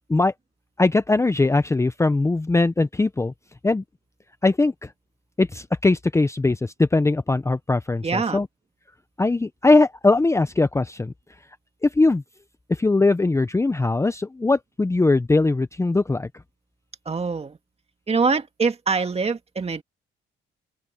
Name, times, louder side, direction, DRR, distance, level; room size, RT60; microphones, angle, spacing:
voice 1, 0.8-3.3 3.6-3.8 4.4-4.9 5.4-8.5 9.2-11.1 11.8-12.2 12.7-16.3, left 3 dB, 15° left, 0.7 m, -20 dB
voice 2, 8.0-8.4 17.1-17.6 18.1-19.8, right 4 dB, 30° right, 2.1 m, -24 dB
open air
cardioid pair, 90°, 20 cm